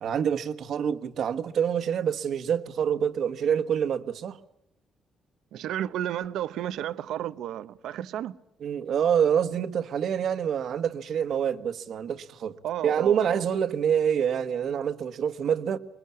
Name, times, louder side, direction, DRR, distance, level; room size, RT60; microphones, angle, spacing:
voice 1, 0.0-4.4 8.6-12.6 12.8-15.8, right 8 dB, 60° right, 1.5 m, -26 dB
voice 2, 5.5-8.4 12.6-13.4, right 11 dB, 85° right, 1.0 m, -32 dB
26.0 x 22.5 x 8.6 m
cardioid pair, 125°, 0 cm